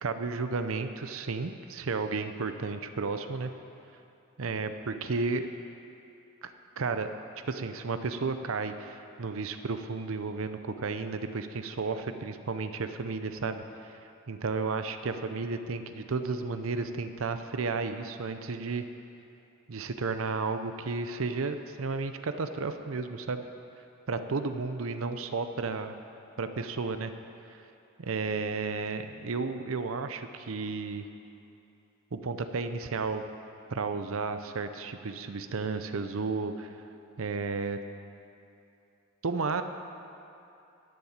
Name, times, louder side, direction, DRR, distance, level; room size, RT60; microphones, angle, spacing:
voice 1, 0.0-3.5 4.4-5.5 6.4-7.1 7.5-18.8 19.7-23.4 24.1-26.0 26.4-27.1 28.0-31.0 32.1-33.2 33.7-36.8 37.2-37.8 39.2-39.6, right 4 dB, 70° right, 9 dB, 0.6 m, -33 dB
11.5 x 7.2 x 8.7 m, 2.7 s
head